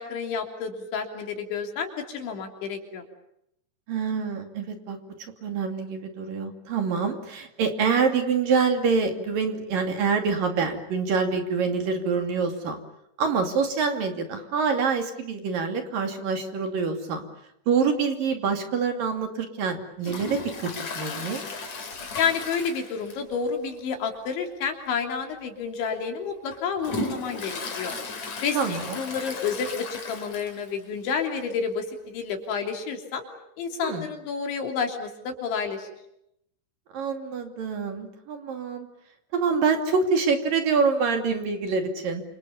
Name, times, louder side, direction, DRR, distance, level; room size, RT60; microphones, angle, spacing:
voice 1, 0.0-3.0 22.2-28.0 28.4-33.3 33.6-35.9, left 6 dB, 65° left, 4 dB, 5.3 m, -30 dB
voice 2, 3.9-5.0 5.4-12.8 13.2-17.2 17.7-20.7 21.0-21.4 28.5-29.0 33.8-34.0 36.9-38.9 39.3-42.2, right 5 dB, 50° right, 6 dB, 3.8 m, -26 dB
Toilet flush, 20.0-23.5 23.7-23.8 24.3-24.4 25.2-25.3 25.9-30.8 31.1-31.2 31.4-31.5 32.5-32.6, left 3 dB, 35° left, 4.4 m, -35 dB
28.0 x 27.5 x 7.1 m, 0.79 s
omnidirectional pair, 5.8 m